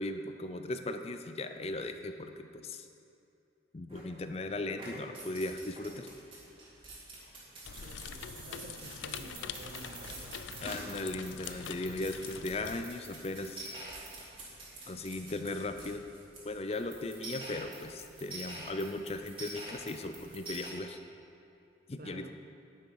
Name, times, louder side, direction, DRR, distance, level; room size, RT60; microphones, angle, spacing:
voice 1, 0.0-2.9 3.7-6.1 10.6-13.7 14.9-16.1 16.4-21.0 21.9-22.3, left 2 dB, 35° left, 8 dB, 0.5 m, -37 dB
sound 1, 3.9-4.4 4.7-20.7, right 2 dB, 30° right, 2.4 m, -47 dB
sound 2, 7.6-12.9, left 7 dB, 85° left, 0.4 m, -44 dB
voice 2, 7.7-10.6 22.0-22.3, right 2 dB, 50° right, 7 dB, 0.6 m, -51 dB
10.0 x 9.8 x 4.7 m, 2.7 s
head